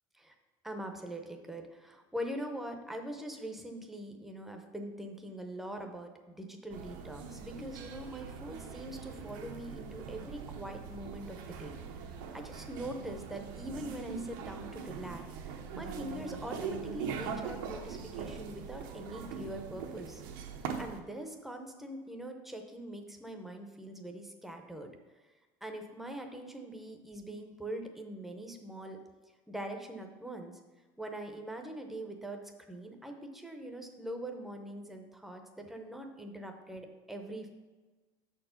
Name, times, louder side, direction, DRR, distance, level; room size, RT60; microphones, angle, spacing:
voice 1, 0.6-12.0 12.3-20.2 20.8-29.0 29.5-30.6 31.0-32.4 32.7-37.5, right 1 dB, ahead, 4 dB, 0.6 m, -43 dB
sound 1, 6.7-21.0, right 6 dB, 85° right, 0.8 m, -42 dB
6.2 x 4.4 x 5.7 m, 1.3 s
cardioid pair, 150°, 10 cm